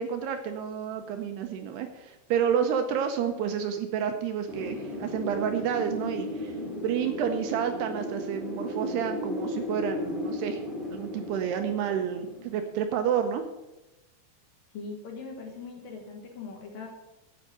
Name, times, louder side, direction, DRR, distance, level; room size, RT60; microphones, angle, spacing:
voice 1, 0.0-6.5 6.8-10.6 10.9-13.4, right 8 dB, 75° right, 6 dB, 2.6 m, -30 dB
Wind, 4.5-13.2, left 1 dB, ahead, 0.8 m, -35 dB
voice 2, 14.7-16.9, left 4 dB, 60° left, 2 dB, 2.7 m, -40 dB
9.8 x 8.6 x 7.8 m, 1.0 s
omnidirectional pair, 5.3 m